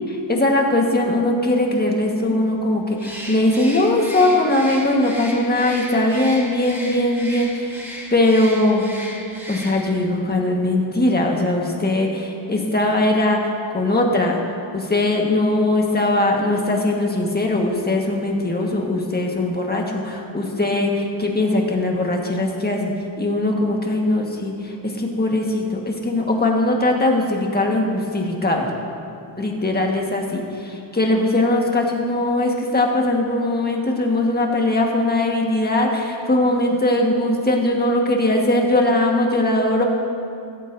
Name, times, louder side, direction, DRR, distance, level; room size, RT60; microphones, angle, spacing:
voice 1, 0.3-7.8 8.1-8.8 9.5-14.4 14.7-22.9 23.2-28.7 29.4-39.8, left 1 dB, 20° left, 0 dB, 1.6 m, -20 dB
Bird, 3.0-10.0, equal, 5° right, 1.7 m, -35 dB
15.5 x 14.0 x 2.7 m, 2.5 s
wide cardioid pair, 120°, 47 cm